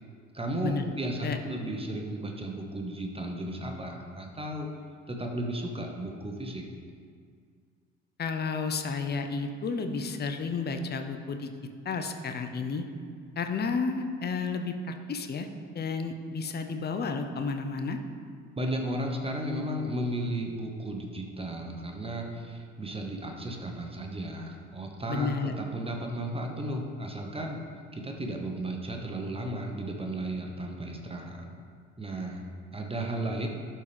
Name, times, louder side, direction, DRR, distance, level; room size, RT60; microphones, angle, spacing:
voice 1, 0.3-4.7 5.1-6.6 18.6-27.6 27.9-31.5 32.0-32.4 32.7-33.5, right 1 dB, 15° right, 2 dB, 1.1 m, -34 dB
voice 2, 8.2-11.5 11.8-12.8 13.4-15.5 15.7-18.0 25.1-25.5, left 4 dB, 25° left, 6 dB, 0.7 m, -31 dB
11.5 x 4.4 x 3.5 m, 2.1 s
figure-of-eight pair, 55°, 37 cm